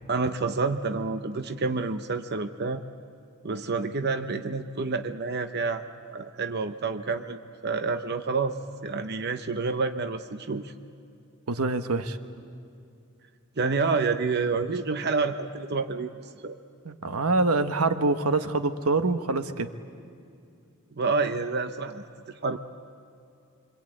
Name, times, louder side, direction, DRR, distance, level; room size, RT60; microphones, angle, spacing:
voice 1, 0.1-2.8 3.4-5.8 6.1-8.6 8.8-10.7 13.6-16.1 16.4-16.5 21.0-22.6, right 4 dB, 50° right, 8 dB, 0.8 m, -28 dB
voice 2, 11.5-12.2 16.8-19.7, right 3 dB, 85° right, 9 dB, 1.2 m, -25 dB
25.5 x 25.0 x 9.0 m, 2.5 s
head